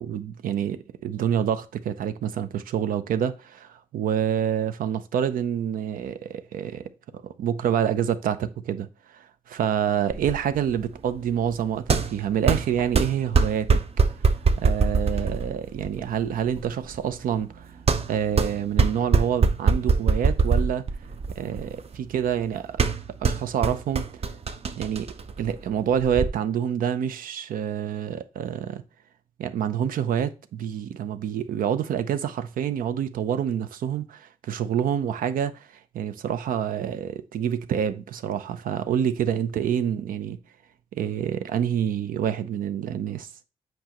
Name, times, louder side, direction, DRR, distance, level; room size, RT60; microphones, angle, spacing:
voice 1, 0.0-6.8 7.4-13.8 14.6-17.7 18.1-20.8 21.4-22.8 23.2-24.0 24.8-25.1 25.4-28.8 29.4-35.7 35.9-40.4 40.9-43.3, right 9 dB, 90° right, 0.6 m, -27 dB
sound 1, 10.1-26.3, right 4 dB, 45° right, 0.7 m, -25 dB
7.9 x 5.1 x 3.0 m
cardioid pair, 85°, 14 cm